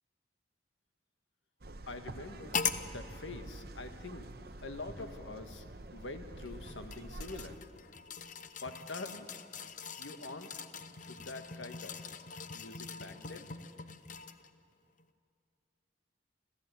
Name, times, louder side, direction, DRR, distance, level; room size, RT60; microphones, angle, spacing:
sound 1, 1.6-7.6, right 2 dB, 55° right, 1.0 m, -47 dB
voice 1, 1.9-2.6 2.8-4.3 4.6-5.6 5.9-7.5 8.6-9.3 9.6-10.5 11.1-12.0 12.5-13.6 14.1-14.2, left 3 dB, 85° left, 7 dB, 1.7 m, -45 dB
sound 2, 2.5-2.9 3.9-4.0 6.4-14.5 15.0-15.1, left 6 dB, 40° left, 0.8 m, -41 dB
29.5 x 13.5 x 9.5 m, 2.4 s
head